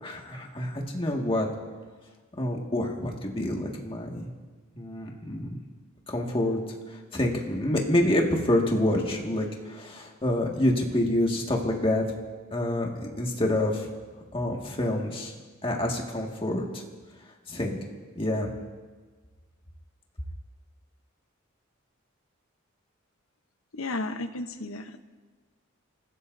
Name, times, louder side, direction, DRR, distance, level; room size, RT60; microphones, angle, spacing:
voice 1, 0.0-1.5 2.4-4.3 4.7-5.6 6.1-6.6 6.9-12.0 12.5-13.9 14.3-15.3 15.6-16.8 17.5-17.8 18.2-18.5, left 1 dB, 25° left, 0 dB, 1.9 m, -27 dB
voice 2, 23.7-25.0, left 2 dB, 85° left, 9 dB, 0.9 m, -33 dB
29.5 x 15.5 x 2.7 m, 1.4 s
head